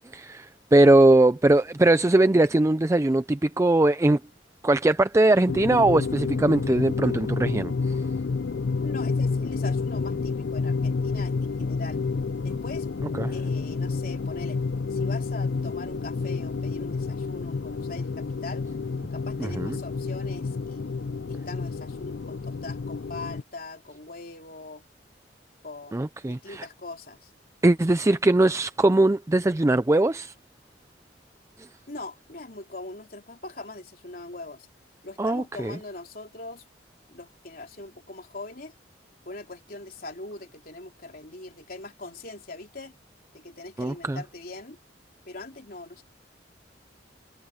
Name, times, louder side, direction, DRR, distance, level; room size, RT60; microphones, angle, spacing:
voice 1, 0.1-4.2 4.6-7.9 13.2-13.3 19.4-19.8 25.9-26.7 27.6-30.3 35.2-35.8 43.8-44.2, right 2 dB, 15° right, 0.4 m, -21 dB
sound 1, 5.5-23.4, left 4 dB, 75° left, 0.5 m, -29 dB
voice 2, 8.8-12.0 12.4-12.9 13.3-14.6 14.9-18.7 19.1-21.0 21.3-24.8 25.6-27.3 31.9-34.7 35.0-36.6 37.1-38.7 39.3-42.9 43.3-44.8 45.3-46.0, left 2 dB, 55° left, 3.4 m, -41 dB
head